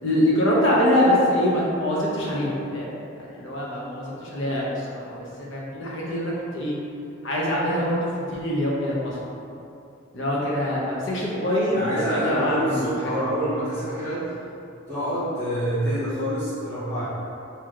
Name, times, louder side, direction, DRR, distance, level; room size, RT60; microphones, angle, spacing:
voice 1, 0.0-2.9 3.2-6.8 7.2-9.2 10.1-13.4, left 1 dB, 70° left, -5 dB, 0.8 m, -24 dB
voice 2, 11.7-14.3 14.9-17.0, equal, 40° left, -15 dB, 1.1 m, -26 dB
4.5 x 2.9 x 2.5 m, 2.7 s
head